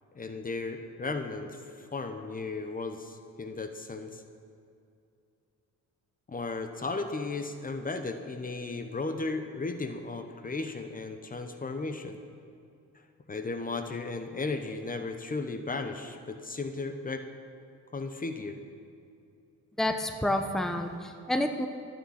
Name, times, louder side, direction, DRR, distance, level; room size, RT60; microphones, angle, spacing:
voice 1, 0.1-4.2 6.3-12.2 13.3-17.3 17.9-18.6, left 3 dB, 30° left, 7 dB, 1.0 m, -35 dB
voice 2, 19.8-21.7, left 1 dB, ahead, 5 dB, 0.9 m, -29 dB
24.0 x 9.2 x 4.3 m, 2.5 s
cardioid pair, 90°, 30 cm